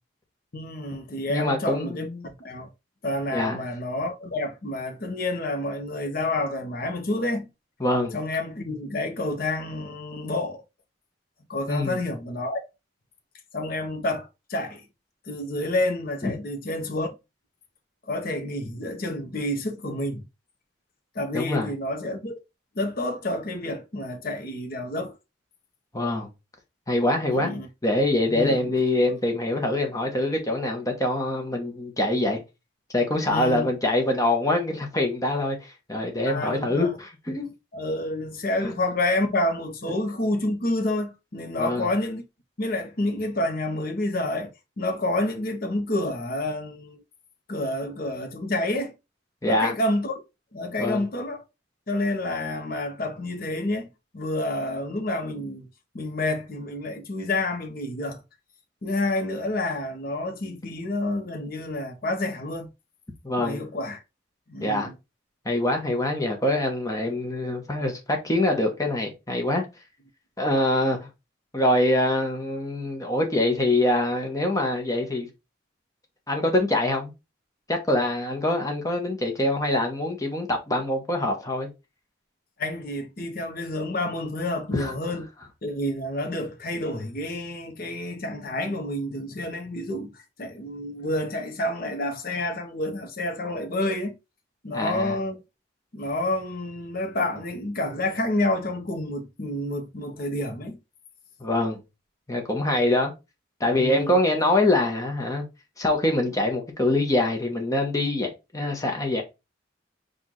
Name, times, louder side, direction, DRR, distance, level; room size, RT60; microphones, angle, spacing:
voice 1, 0.5-2.7 3.0-7.5 8.1-10.6 11.5-12.6 13.5-14.8 15.3-17.1 18.1-20.2 21.1-22.3 22.7-25.2 27.3-27.7 28.2-28.7 33.3-33.7 36.3-37.0 37.7-42.2 42.6-47.0 47.5-48.9 49.4-50.2 50.5-51.4 51.9-53.9 54.1-55.7 55.9-58.2 58.8-62.7 63.4-64.0 64.5-64.9 82.6-85.3 85.6-94.2 94.6-95.4 95.9-100.8 103.8-104.2, left 1 dB, 45° left, 0.9 m, -29 dB
voice 2, 1.3-2.3 3.3-3.6 7.8-8.1 11.7-12.0 16.2-16.4 21.3-21.7 25.9-26.3 26.9-27.5 27.8-32.4 32.9-37.5 38.6-38.7 41.6-41.9 49.4-49.7 50.8-51.0 63.2-63.6 64.6-64.9 65.4-69.6 70.4-71.0 71.5-75.3 76.3-77.1 77.7-81.7 84.7-84.9 94.7-95.2 101.4-101.8 102.3-103.1 103.6-105.4 105.8-109.2, left 1 dB, 15° left, 1.0 m, -24 dB
4.6 x 2.5 x 3.8 m
head